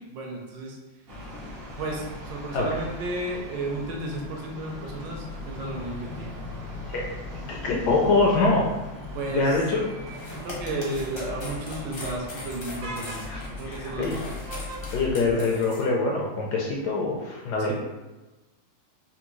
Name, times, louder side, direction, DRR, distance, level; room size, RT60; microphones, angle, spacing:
voice 1, 0.1-0.8 1.8-6.3 9.1-9.6 10.3-14.4 17.7-17.8, right 2 dB, 75° right, 0 dB, 1.2 m, -33 dB
sound 1, 1.1-15.1, left 2 dB, 45° right, 0.7 m, -39 dB
voice 2, 7.5-8.7 9.3-9.9 13.3-14.2 14.9-17.7, left 3 dB, 75° left, -2 dB, 1.0 m, -24 dB
sound 2, 10.1-15.8, left 2 dB, 50° left, 0.7 m, -40 dB
3.5 x 2.5 x 3.0 m, 1.1 s
omnidirectional pair, 2.1 m